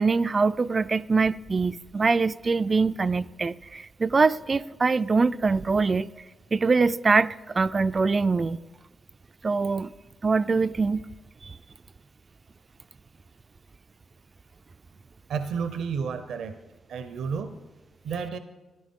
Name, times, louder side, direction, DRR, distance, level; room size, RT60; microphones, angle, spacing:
voice 1, 0.0-6.1 6.5-8.6 9.4-9.9 10.2-11.0 11.4-11.6, right 4 dB, 40° right, 0.3 m, -23 dB
voice 2, 15.3-16.6 16.9-17.6 18.0-18.4, right 6 dB, 85° right, 0.6 m, -31 dB
13.5 x 10.5 x 3.7 m
cardioid pair, 60°, 0 cm